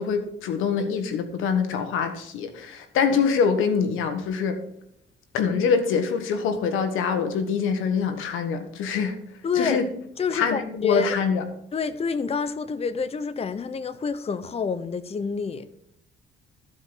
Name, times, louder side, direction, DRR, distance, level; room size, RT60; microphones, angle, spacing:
voice 1, 0.0-4.6 5.3-9.2 9.5-9.9 10.3-11.4, left 6 dB, 90° left, 1.4 m, -24 dB
voice 2, 9.4-9.8 10.2-11.1 11.7-15.7, left 6 dB, 30° left, 0.7 m, -28 dB
14.5 x 5.2 x 4.0 m
cardioid pair, 90°, 20 cm